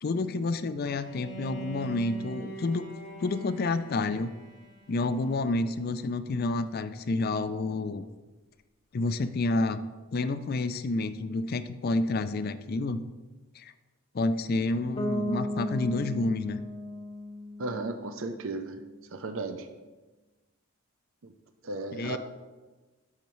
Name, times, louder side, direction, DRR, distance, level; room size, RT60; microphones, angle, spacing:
voice 1, 0.0-2.9 3.2-4.3 4.9-8.0 8.9-9.8 10.1-13.0 13.6-13.7 14.1-16.6 21.9-22.2, left 2 dB, 45° left, 13 dB, 0.4 m, -29 dB
Bowed string instrument, 0.9-5.9, right 4 dB, 85° left, 2.4 m, -44 dB
Bass guitar, 15.0-18.8, left 1 dB, 25° left, 0.9 m, -36 dB
voice 2, 17.6-18.8 19.1-19.7 21.2-21.3 21.6-22.2, right 3 dB, 60° right, 7 dB, 0.5 m, -35 dB
12.0 x 5.7 x 3.1 m, 1.2 s
head